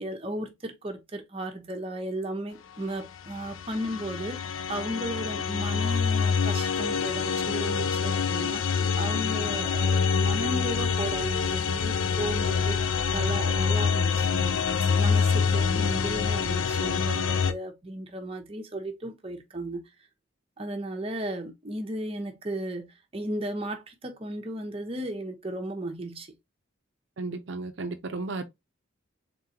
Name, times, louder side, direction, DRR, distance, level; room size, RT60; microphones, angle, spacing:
voice 1, 0.0-14.6 15.0-19.8 20.6-22.9 23.1-26.3, right 1 dB, 30° right, 0.8 m, -35 dB
sound 1, 3.2-17.5, left 6 dB, 85° left, 0.5 m, -26 dB
voice 2, 27.2-28.4, right 3 dB, 65° right, 0.5 m, -34 dB
3.7 x 3.7 x 2.7 m
head